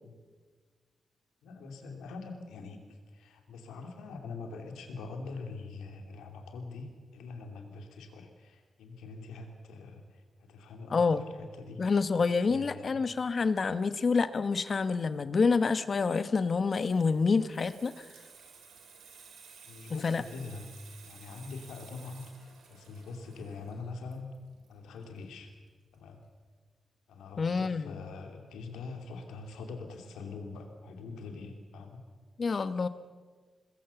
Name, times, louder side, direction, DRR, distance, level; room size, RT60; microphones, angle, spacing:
voice 1, 1.4-13.0 19.6-20.8 21.0-24.3 24.7-25.5 25.9-26.2 27.1-32.0, left 4 dB, 90° left, 4 dB, 2.8 m, -44 dB
voice 2, 10.9-11.2 11.8-18.0 20.0-20.2 27.4-28.0 32.4-32.9, left 4 dB, 55° left, 13 dB, 1.1 m, -27 dB
Water tap faucet / Sink (filling or washing), 16.4-25.7 26.0-26.2, right 5 dB, 85° right, 3.6 m, -55 dB
22.0 x 20.0 x 7.0 m, 1.5 s
supercardioid pair, 45°, 0 cm